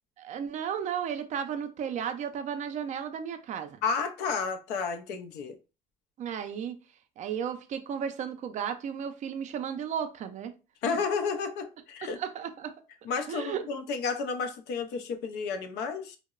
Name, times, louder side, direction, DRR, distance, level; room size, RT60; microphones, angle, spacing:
voice 1, 0.2-3.8 6.2-6.8 7.2-10.5 10.9-11.0 12.2-12.7 13.3-13.6, right 8 dB, 45° right, 0.4 m, -34 dB
voice 2, 3.8-5.6 10.8-12.2 13.0-16.2, left 5 dB, 85° left, 0.4 m, -31 dB
2.8 x 2.0 x 2.3 m
cardioid pair, 110°, 17 cm